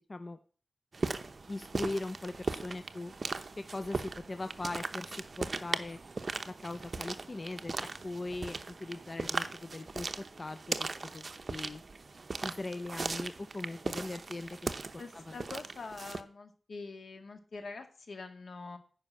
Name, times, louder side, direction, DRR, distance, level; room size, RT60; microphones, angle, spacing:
sound 1, 0.9-16.2, right 3 dB, 50° right, 0.8 m, -38 dB
voice 1, 1.5-3.1 3.6-6.0 6.5-10.1 10.4-11.8 12.4-14.7 15.1-15.4, left 2 dB, 40° left, 9 dB, 0.7 m, -40 dB
voice 2, 15.0-18.8, left 4 dB, 75° left, 6 dB, 2.0 m, -45 dB
10.0 x 5.6 x 8.4 m, 0.40 s
wide cardioid pair, 105°, 0 cm